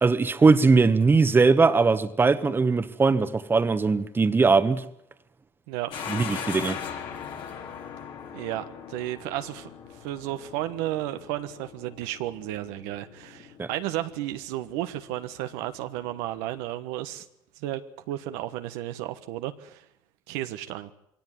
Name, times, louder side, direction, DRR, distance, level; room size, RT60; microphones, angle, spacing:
voice 1, 0.0-4.8 6.1-6.8 13.6-13.7, right 4 dB, 20° right, 1.4 m, -20 dB
sound 1, 5.9-16.7, left 7 dB, 65° left, 4.0 m, -40 dB
voice 2, 8.3-9.7 10.0-17.3 17.6-17.8 18.1-19.8 20.3-20.9, right 14 dB, 85° right, 1.3 m, -33 dB
22.0 x 17.5 x 9.4 m
supercardioid pair, 90°, 10 cm